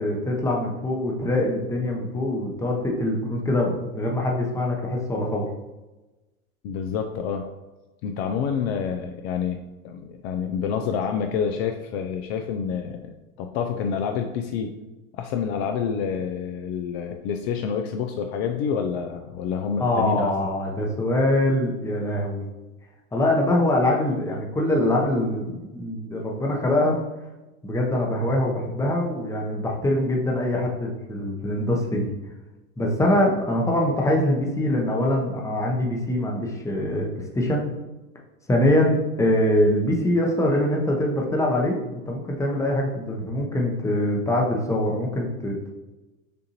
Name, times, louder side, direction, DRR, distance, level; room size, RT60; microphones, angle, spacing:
voice 1, 0.0-5.4 19.8-22.4 23.1-27.0 27.6-32.1 32.8-37.6 38.5-45.7, left 1 dB, 5° left, 0 dB, 0.7 m, -23 dB
voice 2, 6.6-7.5 8.0-14.7 15.2-20.3, left 7 dB, 45° left, 5 dB, 0.4 m, -28 dB
6.7 x 2.5 x 2.9 m, 1.1 s
hypercardioid pair, 105°, 44 cm